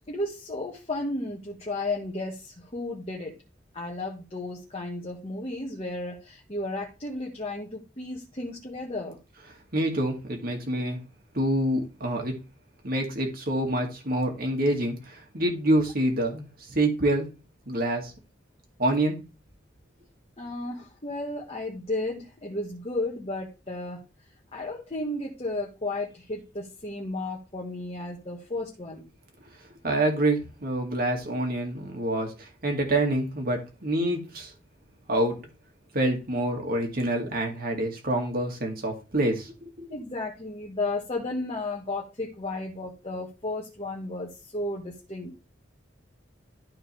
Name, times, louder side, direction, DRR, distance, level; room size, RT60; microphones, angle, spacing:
voice 1, 0.1-3.4 3.7-9.2 20.4-24.0 24.5-29.0 39.9-45.3, left 2 dB, 30° left, -2 dB, 1.7 m, -33 dB
voice 2, 9.7-11.0 11.3-12.4 12.8-17.3 17.7-18.1 18.8-19.2 29.8-34.5 35.1-35.4 35.9-39.9, right 1 dB, 55° right, 2 dB, 2.2 m, -27 dB
12.5 x 4.4 x 3.5 m, 0.29 s
head